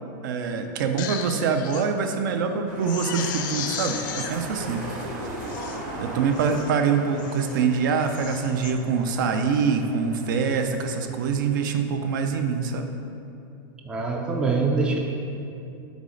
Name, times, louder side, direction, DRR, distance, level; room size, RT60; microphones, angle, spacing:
voice 1, 0.2-5.3 6.0-12.9, right 5 dB, 65° right, 7 dB, 0.5 m, -25 dB
Crying sobbing, 0.8-1.8 2.3-2.4 2.8-4.3 5.0-5.1 5.4-5.8 6.3-6.7 7.2-7.6 8.0-8.7 9.2-9.5, left 8 dB, 65° left, 0.5 m, -35 dB
sound 1, 2.7-11.6, right 1 dB, 45° right, 1.2 m, -38 dB
voice 2, 13.9-15.0, right 4 dB, 10° right, 1 dB, 0.3 m, -24 dB
7.0 x 4.1 x 3.8 m, 2.7 s
supercardioid pair, 165°, 11 cm